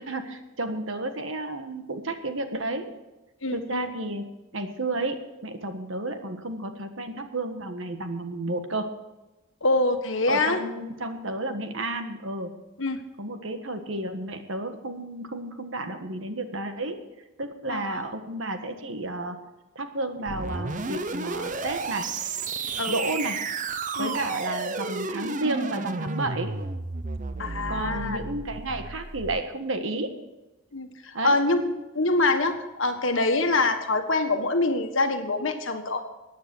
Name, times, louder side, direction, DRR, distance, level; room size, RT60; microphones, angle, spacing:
voice 1, 0.0-2.9 3.5-4.3 4.5-8.9 10.3-12.5 13.2-17.0 17.4-19.4 19.7-22.1 22.9-23.4 24.0-26.5 27.7-30.2 31.1-31.4, right 2 dB, 65° right, 7 dB, 1.5 m, -32 dB
voice 2, 3.4-3.9 9.6-10.6 12.8-13.0 17.7-18.0 22.8-22.9 23.9-24.1 27.4-28.2 30.7-36.0, left 2 dB, 65° left, 6 dB, 1.6 m, -25 dB
sound 1, 20.3-29.4, right 4 dB, 35° right, 0.8 m, -32 dB
15.0 x 9.4 x 6.2 m, 1.1 s
head